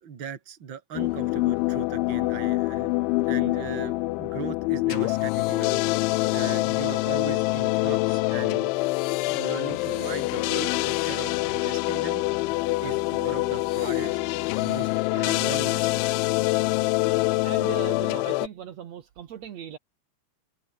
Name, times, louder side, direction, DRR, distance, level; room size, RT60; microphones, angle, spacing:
voice 1, 0.0-2.9 3.3-5.8 6.3-8.7 9.2-12.2 12.8-14.2 14.6-16.1, right 7 dB, 45° right, 1.7 m, -38 dB
sound 1, 0.9-18.5, left 22 dB, 85° left, 3.0 m, -25 dB
voice 2, 16.9-19.8, right 9 dB, 85° right, 1.5 m, -39 dB
omnidirectional pair, 5.5 m